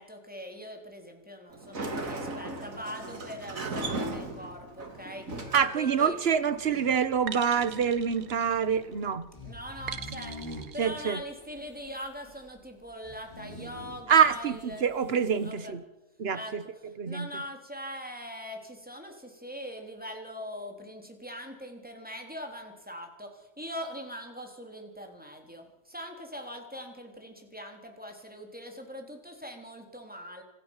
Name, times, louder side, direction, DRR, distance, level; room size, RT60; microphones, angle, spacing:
voice 1, 0.0-6.2 9.4-14.9 15.4-15.7 16.3-16.5 17.1-30.4, equal, 5° right, 3.6 m, -42 dB
Sliding door, 1.5-9.1, right 2 dB, 70° right, 2.8 m, -38 dB
sound 1, 5.4-15.5, left 1 dB, 20° left, 4.9 m, -47 dB
voice 2, 5.5-9.3 10.8-11.2 14.1-15.8 16.2-16.6 17.0-17.3, right 7 dB, 50° right, 1.3 m, -26 dB
sound 2, 5.8-6.2 7.3-8.9 9.9-10.9, right 8 dB, 90° right, 1.5 m, -41 dB
26.0 x 14.0 x 7.4 m
omnidirectional pair, 1.5 m